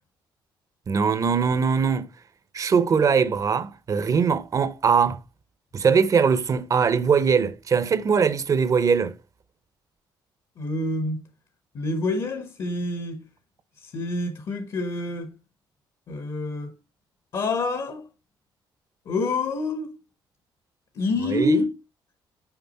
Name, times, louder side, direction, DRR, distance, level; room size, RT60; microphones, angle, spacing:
voice 1, 0.9-2.1 2.5-5.2 5.7-9.1 21.3-21.6, right 6 dB, 40° right, 0.7 m, -21 dB
voice 2, 10.6-11.3 11.7-13.2 13.8-15.4 16.1-16.7 17.3-18.1 19.1-19.9 20.9-21.7, left 2 dB, 55° left, 1.2 m, -27 dB
5.9 x 5.0 x 4.1 m
cardioid pair, 110°, 8 cm